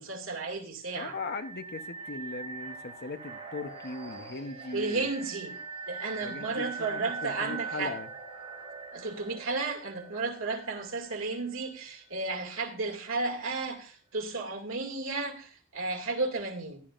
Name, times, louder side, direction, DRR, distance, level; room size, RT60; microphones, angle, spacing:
voice 1, 0.0-1.2 4.7-5.5 5.9-8.0 8.9-16.8, right 3 dB, 85° right, 2.3 m, -33 dB
voice 2, 0.9-5.1 6.2-8.1, left 3 dB, 55° left, 0.9 m, -39 dB
sound 1, 0.9-11.7, right 5 dB, 30° right, 4.2 m, -42 dB
15.5 x 11.0 x 2.5 m
head